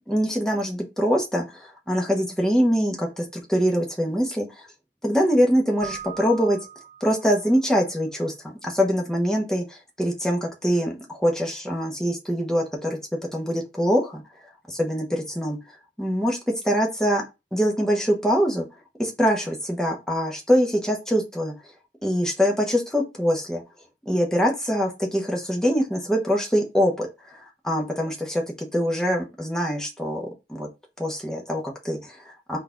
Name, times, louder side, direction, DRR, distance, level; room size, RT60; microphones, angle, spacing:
voice 1, 0.1-4.7 5.0-6.6 7.0-13.0 13.3-14.2 14.7-15.6 16.0-16.4 16.6-17.2 17.5-18.7 19.0-21.5 22.0-23.6 24.0-27.1 27.3-30.7 31.0-32.6, equal, 5° left, -1 dB, 0.7 m, -24 dB
Keyboard (musical), 5.8-7.6, right 9 dB, 40° right, 0.5 m, -40 dB
4.0 x 2.3 x 3.7 m, 0.26 s
head